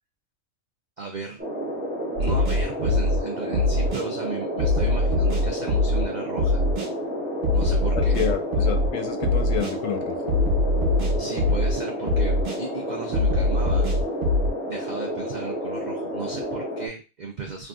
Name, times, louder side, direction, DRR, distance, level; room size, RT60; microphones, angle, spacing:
voice 1, 1.0-1.4 2.2-6.6 7.5-8.2 11.2-13.9 14.7-17.7, right 4 dB, 75° right, 2 dB, 0.4 m, -35 dB
sound 1, 1.4-16.9, equal, 15° right, 0.4 m, -31 dB
sound 2, 2.2-3.2 3.5-4.0 4.6-6.0 6.4-6.9 7.4-8.9 9.2-9.7 10.3-11.7 12.1-12.6 13.1-14.5, left 2 dB, 60° right, 1.1 m, -22 dB
voice 2, 7.9-10.2, left 8 dB, 75° left, 6 dB, 0.9 m, -29 dB
3.5 x 2.4 x 2.3 m, 0.29 s
omnidirectional pair, 1.4 m